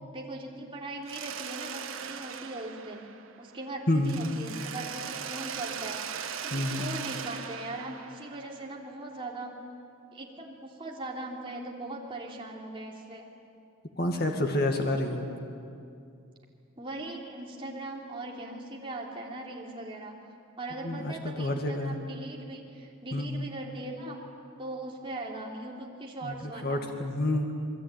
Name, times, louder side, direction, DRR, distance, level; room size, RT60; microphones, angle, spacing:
voice 1, 0.1-3.0 3.4-9.5 10.1-13.2 16.8-20.2 20.6-24.2 24.6-26.8, right 2 dB, 25° right, -2 dB, 3.2 m, -40 dB
Mechanisms, 1.1-3.7 4.0-8.9, right 7 dB, 80° right, 1.4 m, -39 dB
voice 2, 6.5-6.9 14.0-15.2 20.8-22.0 23.1-23.5 26.2-27.5, left 1 dB, 50° left, 3 dB, 2.1 m, -29 dB
27.5 x 21.0 x 9.2 m, 2.5 s
head